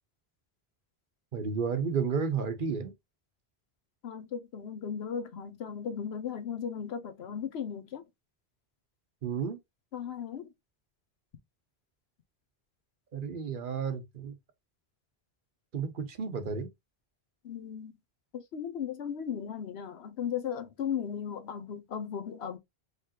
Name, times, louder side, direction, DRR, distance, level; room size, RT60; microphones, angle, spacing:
voice 1, 1.3-2.9 9.2-9.6 13.1-14.3 15.7-16.7, right 6 dB, 55° right, 0.9 m, -32 dB
voice 2, 4.0-8.0 9.9-10.5 17.4-17.9 18.3-22.6, left 8 dB, 85° left, 1.0 m, -36 dB
5.0 x 3.3 x 2.8 m
omnidirectional pair, 1.0 m